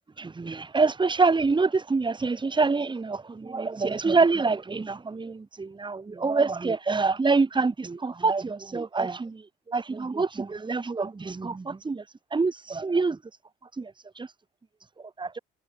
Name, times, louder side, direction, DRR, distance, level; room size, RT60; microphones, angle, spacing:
voice 1, 0.2-12.0 12.3-13.2 13.8-14.3 15.0-15.4, right 4 dB, 25° right, 1.9 m, -26 dB
cardioid pair, 90°, 20 cm